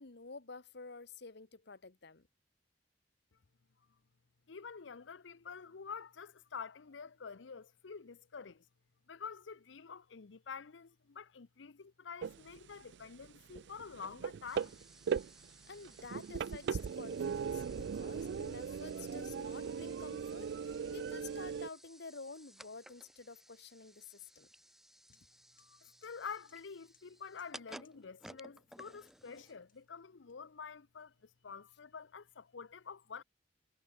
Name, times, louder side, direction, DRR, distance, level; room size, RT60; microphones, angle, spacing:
voice 1, 0.0-2.3 15.7-24.5, left 4 dB, 65° left, 1.3 m, -50 dB
voice 2, 4.5-8.6 9.1-14.8 25.6-33.2, left 6 dB, 85° left, 0.7 m, -48 dB
sound 1, 12.2-12.7 12.9-21.7, right 6 dB, 65° right, 0.4 m, -39 dB
sound 2, 14.5-29.8, equal, ahead, 3.5 m, -58 dB
sound 3, 24.7-24.8 25.1-25.2 25.6-25.7 26.0-26.1 26.5-26.6 26.9-27.0 27.4-27.5 27.8-28.0 28.3-28.4 29.1-29.3 29.7-30.7, left 11 dB, 50° left, 6.0 m, -71 dB
head